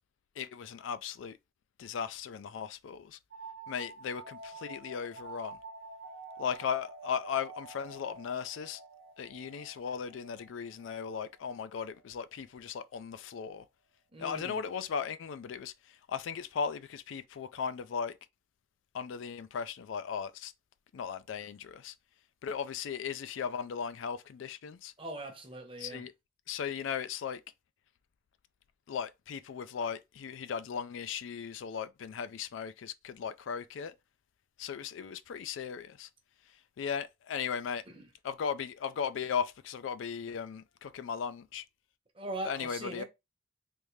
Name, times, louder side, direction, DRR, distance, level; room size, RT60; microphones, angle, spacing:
voice 1, 0.4-1.4 1.8-3.2 3.7-5.6 6.4-8.8 9.2-13.7 14.2-18.2 18.9-20.5 20.9-21.9 22.4-24.9 25.8-26.1 26.5-27.4 28.9-33.9 34.6-36.1 36.8-37.8 38.2-41.6 42.4-43.0, left 7 dB, 80° left, 0.4 m, -37 dB
sound 1, 3.3-12.7, right 3 dB, 70° right, 0.9 m, -49 dB
voice 2, 14.1-14.6 25.0-26.1 37.9-38.1 42.1-43.0, right 1 dB, 30° right, 0.8 m, -41 dB
3.5 x 2.6 x 3.1 m
head